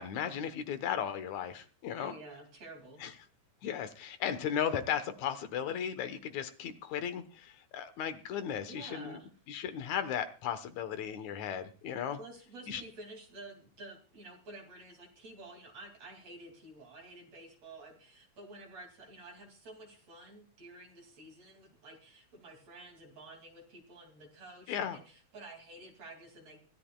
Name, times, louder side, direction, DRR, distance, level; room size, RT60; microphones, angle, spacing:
voice 1, 0.0-2.1 3.0-3.1 3.6-9.2 9.5-12.2 12.7-12.8 24.7-25.0, left 8 dB, 75° left, 10 dB, 2.4 m, -36 dB
voice 2, 2.0-3.1 8.6-9.3 12.2-26.6, right 2 dB, 60° right, 2 dB, 3.6 m, -51 dB
24.5 x 13.5 x 2.3 m, 0.37 s
omnidirectional pair, 3.4 m